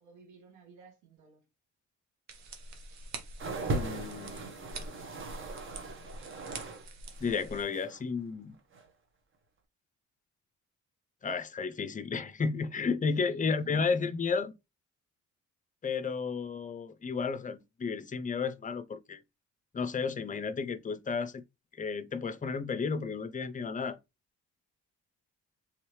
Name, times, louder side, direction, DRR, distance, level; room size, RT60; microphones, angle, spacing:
voice 1, 0.0-1.5 13.2-13.9, right 7 dB, 80° right, 1.5 m, -52 dB
sound 1, 2.3-7.6, right 3 dB, 65° right, 0.9 m, -46 dB
sound 2, 3.4-6.8 7.1-8.0 8.7-8.8, right 2 dB, 45° right, 1.1 m, -38 dB
voice 2, 3.7-4.7 7.2-8.5 11.2-14.5 15.8-19.2 19.7-21.4 21.8-24.0, left 5 dB, 25° left, 0.5 m, -33 dB
3.5 x 3.2 x 3.1 m
cardioid pair, 90°, 30 cm